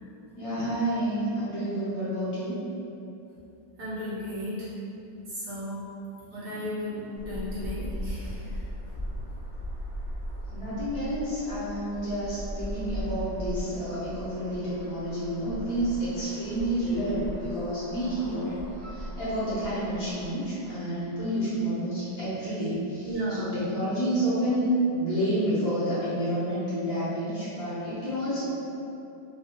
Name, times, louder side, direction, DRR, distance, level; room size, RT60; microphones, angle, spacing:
voice 1, 0.4-2.6 10.5-18.5 18.8-23.1 23.4-28.4, right 1 dB, 55° left, -12 dB, 1.2 m, -29 dB
voice 2, 3.8-4.7 5.3-5.8 6.3-8.6 10.5-10.7 18.8-18.9 23.0-23.5, equal, 65° right, -10 dB, 1.2 m, -35 dB
sound 1, 7.1-20.3, equal, 30° right, 0.3 m, -38 dB
3.4 x 2.2 x 2.7 m, 2.8 s
omnidirectional pair, 2.2 m